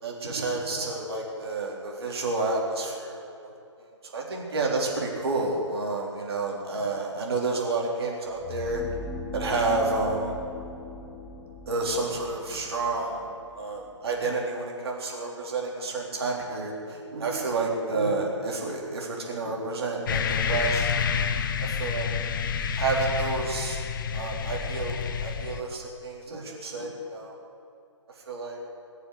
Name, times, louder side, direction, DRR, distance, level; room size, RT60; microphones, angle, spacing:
voice 1, 0.0-3.5 3.8-8.8 9.3-10.3 11.7-13.3 13.6-20.9 21.6-22.1 22.7-23.8 24.1-27.3 28.3-28.6, right 3 dB, 55° right, -1 dB, 3.7 m, -30 dB
sound 1, 8.3-14.2, left 3 dB, 20° left, 1.2 m, -41 dB
sound 2, 20.1-25.6, left 7 dB, 40° left, 0.8 m, -28 dB
21.0 x 7.1 x 9.6 m, 2.6 s
figure-of-eight pair, 140°, 16 cm